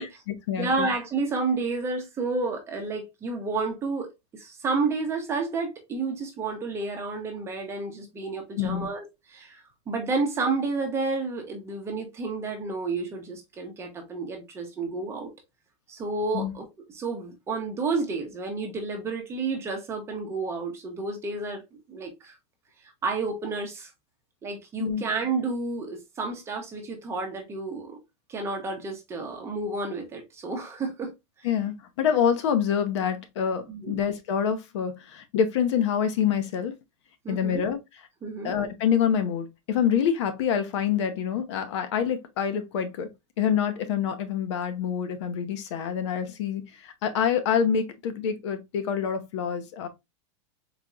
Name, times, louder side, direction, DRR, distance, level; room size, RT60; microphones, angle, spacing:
voice 1, 0.0-0.9 8.6-8.9 16.3-16.5 24.8-25.0 31.4-36.7 37.3-37.8 38.4-43.1 43.4-49.9, left 8 dB, 65° left, 0.7 m, -26 dB
voice 2, 0.6-4.1 4.3-15.3 15.9-22.4 23.0-23.9 24.4-28.0 28.3-31.1 33.7-34.0 37.2-37.7 38.2-38.5, right 3 dB, 15° right, 0.8 m, -31 dB
4.0 x 2.9 x 2.3 m
supercardioid pair, 155°, 16 cm